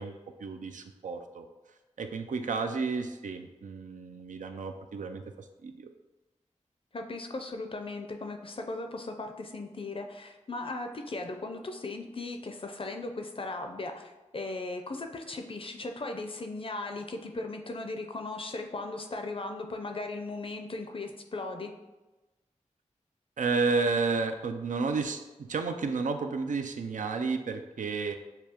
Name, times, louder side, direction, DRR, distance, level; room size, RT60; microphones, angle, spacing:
voice 1, 0.0-1.5 2.0-5.9 23.4-28.1, right 4 dB, 85° right, 6 dB, 0.4 m, -32 dB
voice 2, 6.9-21.7, left 2 dB, 45° left, 4 dB, 0.5 m, -37 dB
6.7 x 2.3 x 2.9 m, 1.1 s
wide cardioid pair, 60°, 13 cm